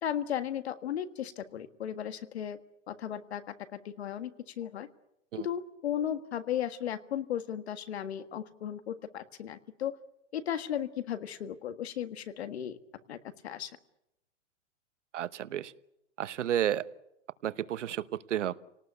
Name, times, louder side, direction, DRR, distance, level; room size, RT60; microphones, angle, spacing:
voice 1, 0.0-2.6 2.9-4.9 5.4-9.9 10.3-12.8 13.1-13.2 13.4-13.7, left 10 dB, 60° left, 11 dB, 1.7 m, -35 dB
voice 2, 15.1-15.7 16.2-16.8 17.4-18.6, right 11 dB, 80° right, 15 dB, 1.1 m, -31 dB
29.0 x 19.0 x 8.2 m, 0.87 s
hypercardioid pair, 175°, 36 cm